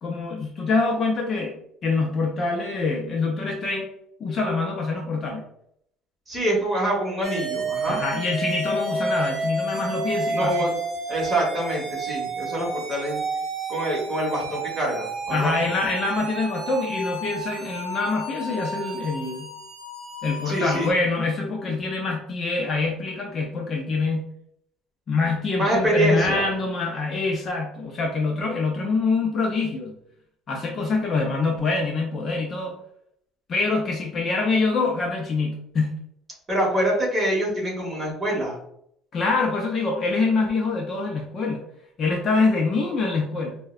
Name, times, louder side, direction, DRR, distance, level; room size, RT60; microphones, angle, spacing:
voice 1, 0.0-3.9 4.2-5.5 7.9-10.7 15.3-19.5 20.2-24.3 25.1-30.0 30.5-32.7 33.5-35.9 39.1-41.6 42.0-43.6, left 3 dB, 30° left, 1 dB, 0.5 m, -25 dB
voice 2, 6.3-8.0 10.3-10.7 11.1-13.2 13.7-15.7 20.5-20.9 25.6-26.5 36.5-38.6, right 1 dB, 15° right, -3 dB, 1.2 m, -25 dB
sound 1, 7.2-20.9, right 2 dB, 35° right, 1.4 m, -31 dB
4.5 x 2.1 x 2.4 m, 0.71 s
cardioid pair, 155°, 0 cm